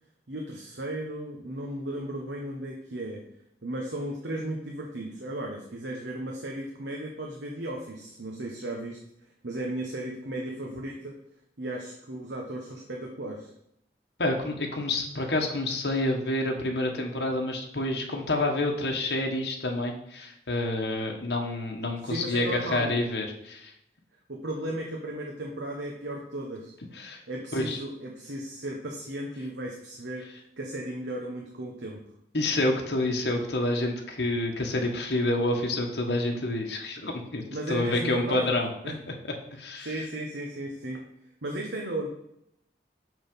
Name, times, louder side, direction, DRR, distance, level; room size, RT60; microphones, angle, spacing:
voice 1, 0.3-3.2 3.6-9.0 9.4-11.1 11.6-13.5 22.0-22.9 24.3-26.7 27.3-30.2 30.6-32.0 37.5-38.5 38.8-39.0 39.8-41.0 41.4-42.1, right 1 dB, 80° right, 0 dB, 1.1 m, -35 dB
voice 2, 14.2-23.7 26.9-27.2 27.5-27.8 32.3-38.7 39.1-39.9, left 2 dB, 70° left, 1 dB, 1.3 m, -28 dB
6.2 x 6.1 x 5.3 m, 0.77 s
head